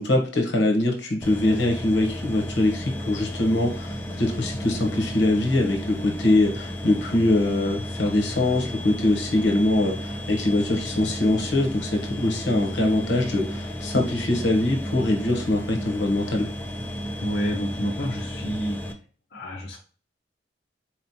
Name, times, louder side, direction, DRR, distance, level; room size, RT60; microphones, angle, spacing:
voice 1, 0.0-16.5, left 1 dB, 75° left, 3 dB, 1.0 m, -23 dB
sound 1, 1.2-18.9, equal, 10° left, 0.4 m, -33 dB
voice 2, 17.2-18.8 19.3-19.8, equal, 60° left, -3 dB, 0.7 m, -29 dB
4.3 x 3.0 x 2.8 m, 0.38 s
head